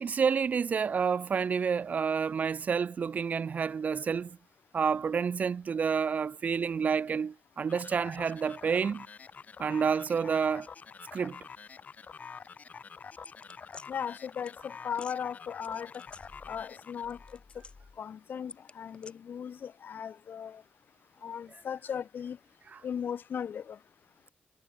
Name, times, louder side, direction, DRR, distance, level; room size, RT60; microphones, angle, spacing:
voice 1, 0.0-4.4 4.7-9.1 9.6-10.7 11.1-11.4 22.7-22.8, right 6 dB, 50° right, 0.5 m, -29 dB
sound 1, 7.7-17.4, left 5 dB, 50° left, 6.0 m, -47 dB
sound 2, 13.2-13.9 14.5-14.6 14.9-15.2 15.6-16.7 17.0-18.0 18.5-19.1, left 4 dB, 30° left, 2.6 m, -50 dB
voice 2, 13.9-16.0 16.5-17.2 18.0-20.6 21.2-22.4 22.8-23.8, left 8 dB, 70° left, 0.9 m, -37 dB
wide cardioid pair, 165°, 3 cm